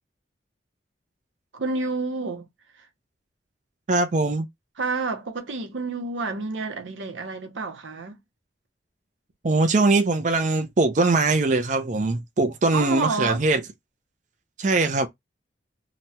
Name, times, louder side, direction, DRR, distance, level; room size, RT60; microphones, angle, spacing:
voice 1, 1.5-2.5 2.8-2.9 4.8-8.2 12.7-13.4, right 3 dB, 90° right, 0.8 m, -29 dB
voice 2, 3.9-4.5 9.4-13.6 14.6-15.1, right 3 dB, 40° right, 0.4 m, -21 dB
2.9 x 2.2 x 2.7 m
head